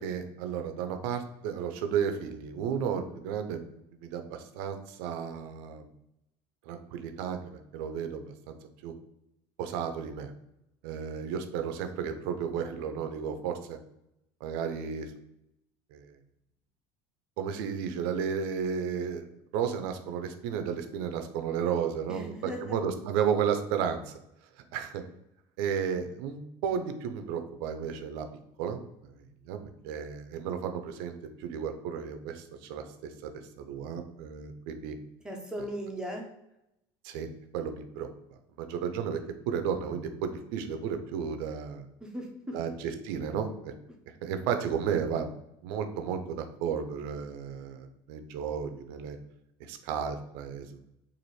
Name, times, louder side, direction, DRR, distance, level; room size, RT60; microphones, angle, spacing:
voice 1, 0.0-3.7 4.0-5.9 6.7-8.5 8.8-8.9 9.6-10.3 10.8-13.8 14.4-15.1 15.9-16.1 17.4-19.2 19.5-24.2 24.7-25.0 25.6-28.3 28.6-31.1 31.4-32.8 33.2-33.3 33.6-34.9 37.0-37.3 37.5-38.1 38.6-39.2 39.5-41.8 42.5-43.7 44.2-45.4 45.6-49.2 49.6-50.8, right 7 dB, 80° right, 7 dB, 0.5 m, -33 dB
voice 2, 22.1-22.8 35.2-36.3 42.0-42.5, equal, 5° right, 1 dB, 0.6 m, -37 dB
4.1 x 2.5 x 3.1 m, 0.84 s
cardioid pair, 140°, 12 cm